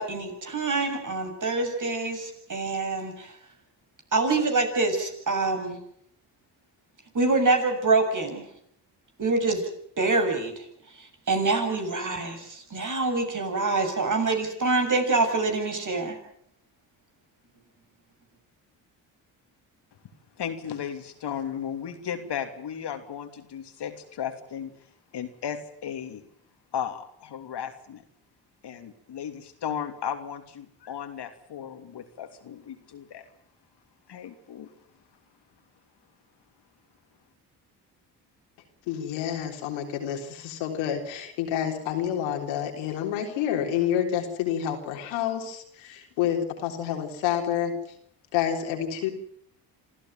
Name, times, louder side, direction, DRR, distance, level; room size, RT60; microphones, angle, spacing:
voice 1, 0.0-3.3 4.1-5.8 7.1-8.4 9.2-9.7 10.0-10.5 11.0-16.2, right 3 dB, 40° right, 5 dB, 7.4 m, -25 dB
voice 2, 20.4-24.7 25.1-26.2 26.7-28.0 28.6-33.3 34.1-34.7, left 8 dB, 60° left, 7 dB, 3.0 m, -35 dB
voice 3, 38.9-47.7 48.3-49.1, left 9 dB, 85° left, 3 dB, 3.8 m, -28 dB
26.5 x 14.5 x 9.3 m, 0.69 s
hypercardioid pair, 55°, 45 cm